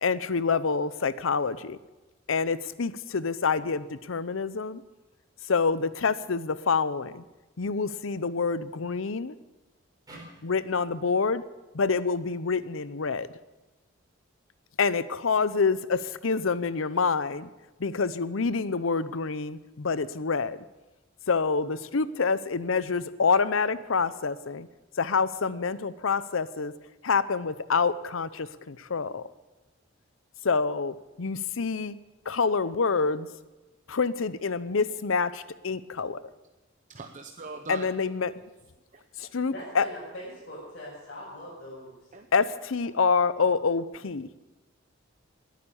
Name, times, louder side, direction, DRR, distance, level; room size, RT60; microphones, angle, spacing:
voice 1, 0.0-1.8 2.3-4.8 5.5-7.2 7.6-9.3 10.4-11.4 11.7-13.3 14.8-17.5 17.8-20.6 21.3-24.7 25.0-26.7 27.0-29.2 30.4-32.0 32.3-33.3 33.9-36.2 37.7-38.3 39.2-39.9 42.3-44.3, left 5 dB, 75° left, 16 dB, 0.7 m, -27 dB
sound 1, 10.1-13.3, right 1 dB, 20° right, 4.7 m, -54 dB
voice 2, 36.9-37.9 38.9-39.3 42.1-42.3, right 4 dB, 40° right, 5 dB, 0.8 m, -41 dB
voice 3, 39.5-42.1, left 1 dB, 50° left, -8 dB, 5.7 m, -42 dB
20.0 x 9.3 x 7.1 m, 1.1 s
head